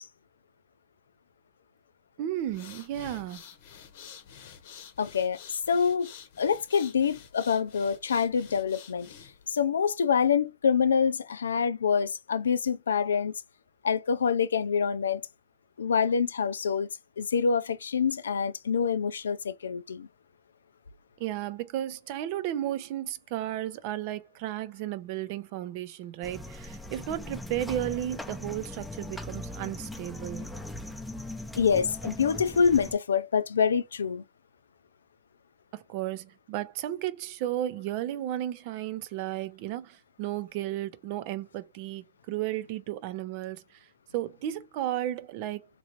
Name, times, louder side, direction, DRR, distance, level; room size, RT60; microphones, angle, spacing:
voice 1, 2.2-3.4 21.2-30.5 35.7-43.9 44.1-45.6, right 13 dB, 55° right, 0.5 m, -34 dB
sound 1, 2.4-9.5, left 8 dB, 65° left, 0.8 m, -49 dB
voice 2, 5.0-6.1 6.4-9.1 9.5-13.3 13.8-15.2 15.8-16.9 17.2-20.1 31.6-34.2, left 6 dB, 90° left, 0.3 m, -26 dB
sound 2, 26.2-33.0, left 1 dB, ahead, 0.6 m, -39 dB
3.0 x 2.5 x 2.9 m
hypercardioid pair, 105°, 0 cm